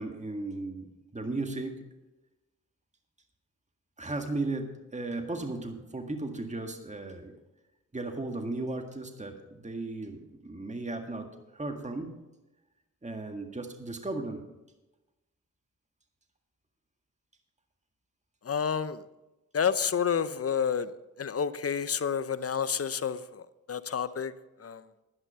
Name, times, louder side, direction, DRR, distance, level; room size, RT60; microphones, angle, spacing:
voice 1, 0.0-1.9 4.0-7.3 7.9-12.2 13.0-14.4, right 2 dB, 20° right, 5 dB, 1.8 m, -36 dB
voice 2, 18.4-19.0 19.5-20.9 21.2-24.3 24.6-24.8, left 7 dB, 45° left, 14 dB, 0.8 m, -29 dB
11.0 x 9.8 x 5.6 m, 1.0 s
supercardioid pair, 45°, 33 cm